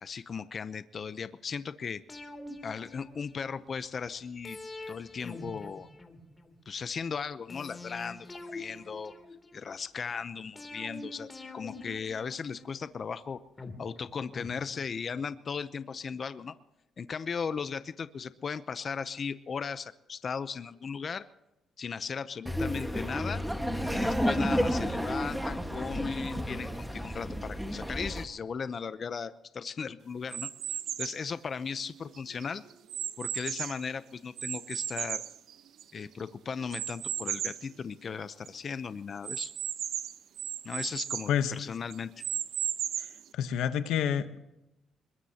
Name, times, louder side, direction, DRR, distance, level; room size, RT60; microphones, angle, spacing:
voice 1, 0.0-2.0 2.6-4.6 4.9-5.9 6.7-8.3 8.5-9.1 9.5-11.3 11.5-13.4 13.8-16.5 17.0-21.2 21.8-23.4 23.9-32.6 33.2-35.2 35.9-39.5 40.6-42.2, left 6 dB, 45° left, 13 dB, 0.7 m, -37 dB
sound 1, 2.1-3.7 4.4-6.6 7.5-9.7 10.6-12.9 13.6-15.2 15.5-15.6, left 2 dB, 25° left, 2.9 m, -45 dB
Laughter, 22.5-28.2, equal, ahead, 1.5 m, -31 dB
sound 2, 30.3-31.3 31.9-33.9 34.4-36.1 36.7-37.7 38.1-38.2 38.5-38.6 39.2-41.3 41.9-43.3, right 10 dB, 70° right, 0.9 m, -35 dB
voice 2, 43.0-44.4, left 9 dB, 85° left, 11 dB, 1.0 m, -29 dB
22.0 x 21.5 x 2.9 m, 0.94 s
cardioid pair, 90°, 0 cm